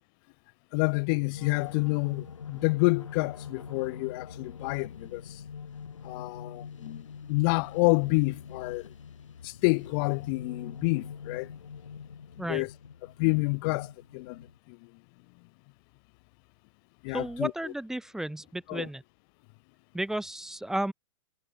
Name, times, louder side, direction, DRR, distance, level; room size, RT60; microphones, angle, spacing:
voice 1, 0.7-5.4 6.0-8.9 9.4-11.5 12.5-12.7 13.0-14.9 17.0-17.7 18.7-18.9, left 31 dB, 45° left, 1.7 m, -28 dB
sound 1, 1.3-14.6, left 6 dB, 80° left, 8.0 m, -44 dB
voice 2, 17.1-19.0 19.9-20.9, right 1 dB, 5° right, 0.8 m, -33 dB
hypercardioid pair, 110°, 16 cm